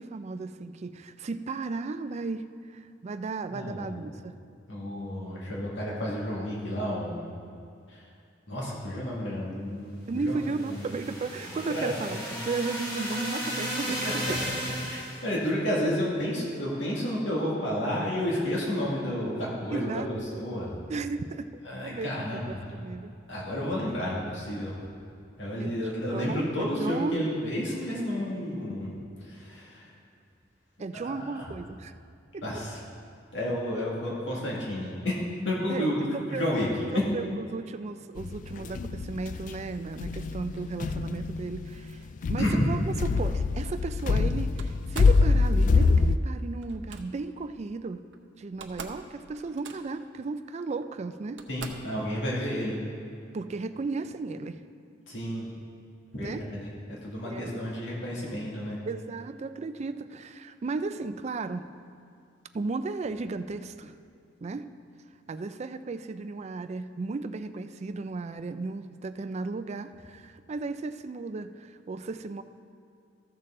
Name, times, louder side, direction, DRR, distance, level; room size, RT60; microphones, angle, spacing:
voice 1, 0.0-2.5 2.7-4.4 10.1-14.4 19.7-20.3 20.9-23.1 25.6-25.7 26.1-27.2 30.8-31.9 32.3-32.6 35.7-36.5 36.9-48.0 48.4-51.4 53.3-54.6 56.2-56.4 57.2-57.7 58.9-61.7 62.5-64.0 64.4-64.7 65.3-72.4, right 3 dB, 35° right, 10 dB, 0.4 m, -35 dB
voice 2, 3.5-4.1 4.7-7.2 7.9-8.1 8.5-10.4 10.7-10.8 11.7-11.9 14.9-20.7 21.6-22.8 23.3-24.8 25.4-29.9 30.9-31.4 32.4-32.8 33.3-35.2 35.4-36.0 36.3-37.0 42.4-42.8 51.5-52.8 55.1-55.5 56.1-58.8, equal, 75° left, -5 dB, 2.1 m, -31 dB
sound 1, 10.3-15.3, equal, 25° left, 2.3 m, -34 dB
sound 2, 38.2-46.2, left 4 dB, 45° left, 0.3 m, -25 dB
Slam, 44.6-45.2 46.6-47.0 48.1-48.2 48.5-49.1 49.3-50.1 50.8-50.9 51.4-52.0, right 5 dB, 80° right, 0.7 m, -43 dB
14.0 x 6.6 x 3.7 m, 2.5 s
head